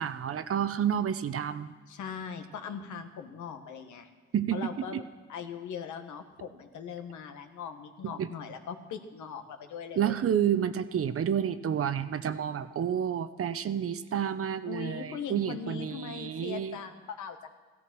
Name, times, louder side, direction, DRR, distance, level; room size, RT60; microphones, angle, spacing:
voice 1, 0.0-1.7 4.3-5.0 8.0-8.3 10.0-16.8, right 9 dB, 50° right, 12 dB, 0.8 m, -30 dB
voice 2, 1.9-4.1 4.5-5.0 5.3-10.2 14.7-17.5, left 6 dB, 75° left, 7 dB, 1.5 m, -40 dB
16.0 x 13.0 x 6.1 m, 1.3 s
cardioid pair, 90°, 30 cm